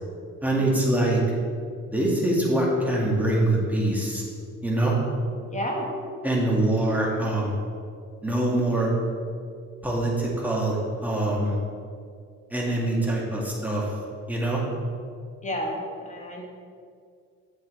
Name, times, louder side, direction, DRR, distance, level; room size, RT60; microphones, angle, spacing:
voice 1, 0.4-1.2 1.9-4.2 4.6-4.9 6.2-7.5 8.2-8.9 9.8-11.6 12.5-13.9 14.3-14.6, right 1 dB, 5° right, -4 dB, 2.0 m, -24 dB
voice 2, 5.4-5.9 7.1-7.3 15.4-16.5, equal, 25° left, 1 dB, 1.4 m, -32 dB
7.7 x 7.4 x 3.3 m, 2.2 s
cardioid pair, 90°, 30 cm